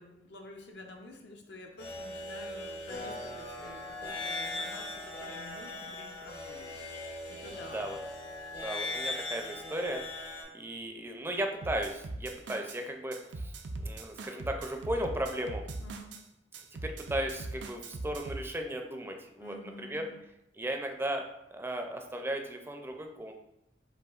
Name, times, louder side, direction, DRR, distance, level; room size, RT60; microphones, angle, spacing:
voice 1, 0.0-8.0 15.8-16.2 19.4-20.2, left 1 dB, 70° left, 2 dB, 0.6 m, -49 dB
sound 1, 1.8-10.4, left 2 dB, 85° left, 1.5 m, -39 dB
voice 2, 8.6-10.0 10.5-13.5 13.8-15.6 16.8-20.1 20.5-23.3, right 1 dB, 15° right, 3 dB, 0.4 m, -36 dB
sound 2, 11.6-12.8 13.1-16.2 16.5-18.5, right 2 dB, 90° right, 0.5 m, -40 dB
7.7 x 2.6 x 2.4 m, 0.86 s
head